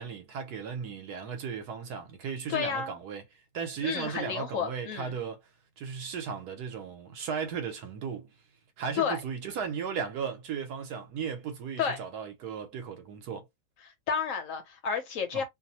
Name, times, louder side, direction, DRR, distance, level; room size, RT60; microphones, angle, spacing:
voice 1, 0.0-3.2 3.5-5.4 5.8-8.3 8.8-13.5 15.3-15.4, right 6 dB, 85° right, 1.4 m, -36 dB
voice 2, 2.5-3.0 3.8-5.1 9.0-9.2 11.8-12.0 13.8-15.4, left 7 dB, 60° left, 1.1 m, -31 dB
3.0 x 2.0 x 2.8 m
omnidirectional pair, 1.6 m